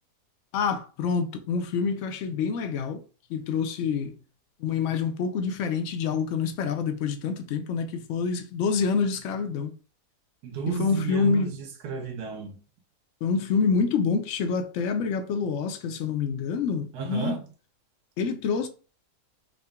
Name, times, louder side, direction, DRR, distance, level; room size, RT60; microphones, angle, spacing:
voice 1, 0.5-3.0 3.3-4.1 4.6-9.7 10.8-11.6 13.2-17.4 18.2-18.7, left 5 dB, 70° left, 0.7 m, -27 dB
voice 2, 10.4-12.6 16.9-17.4, right 6 dB, 75° right, 1.3 m, -32 dB
3.7 x 2.2 x 3.4 m
omnidirectional pair, 1.7 m